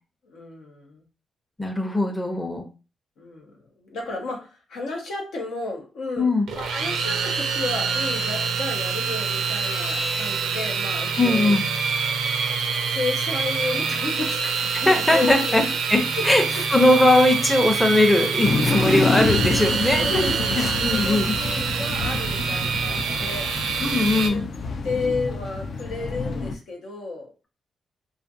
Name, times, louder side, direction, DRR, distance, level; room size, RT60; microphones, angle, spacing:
voice 1, 0.2-1.0 3.2-3.5 3.8-6.3 6.6-11.6 12.9-15.6 16.2-16.3 16.6-16.7 19.9-20.6 20.9-23.5 24.2-24.4 24.8-27.3, left 3 dB, 85° left, 0 dB, 0.8 m, -32 dB
voice 2, 1.6-2.7 6.2-6.5 11.2-11.6 14.7-15.6 15.9-16.4 16.7-20.0 20.6-21.3 23.8-24.5, left 2 dB, 15° left, 3 dB, 0.6 m, -20 dB
sound 1, 6.5-24.3, right 5 dB, 85° right, 0.4 m, -26 dB
sound 2, 18.4-26.5, left 4 dB, 60° left, 0.3 m, -28 dB
2.5 x 2.4 x 2.6 m, 0.33 s
cardioid pair, 70°, 0 cm